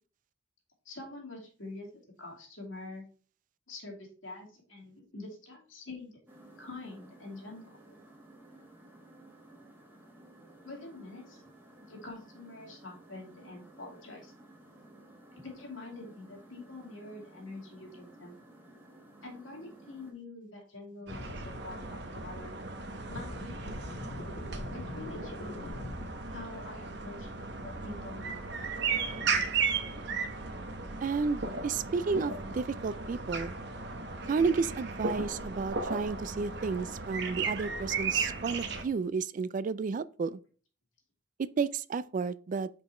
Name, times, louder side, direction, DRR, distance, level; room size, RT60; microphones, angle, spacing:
voice 1, 0.8-1.9 2.2-3.0 3.7-6.1 6.6-8.0 10.6-11.4 11.8-14.3 15.3-18.4 19.2-22.6 23.1-23.7 24.7-25.7 26.3-27.3 27.6-28.5, left 2 dB, 85° left, 2.5 m, -46 dB
sound 1, 6.3-20.1, right 1 dB, 10° right, 1.4 m, -55 dB
sound 2, 21.1-21.6 22.2-22.3 23.1-26.1, left 2 dB, 50° left, 0.7 m, -43 dB
sound 3, 21.1-38.8, right 4 dB, 60° right, 0.9 m, -35 dB
voice 2, 31.0-33.5 34.3-40.4 41.4-42.7, right 5 dB, 40° right, 0.3 m, -32 dB
5.3 x 4.8 x 4.3 m
head